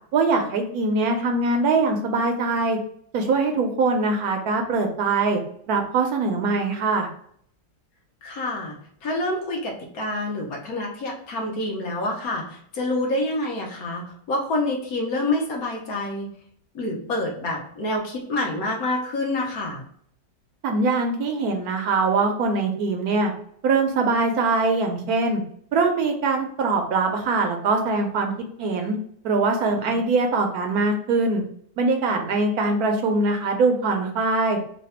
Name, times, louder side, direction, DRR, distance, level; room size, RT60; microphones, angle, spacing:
voice 1, 0.1-2.8 3.1-5.4 5.7-7.1 20.6-23.3 23.6-25.4 25.7-28.3 28.6-29.0 29.2-31.4 31.8-34.6, right 3 dB, 70° right, 4 dB, 1.0 m, -22 dB
voice 2, 8.2-8.7 9.0-16.3 16.7-19.8 29.8-30.0, left 2 dB, 65° left, -1 dB, 1.2 m, -27 dB
3.2 x 2.2 x 4.2 m, 0.64 s
omnidirectional pair, 1.8 m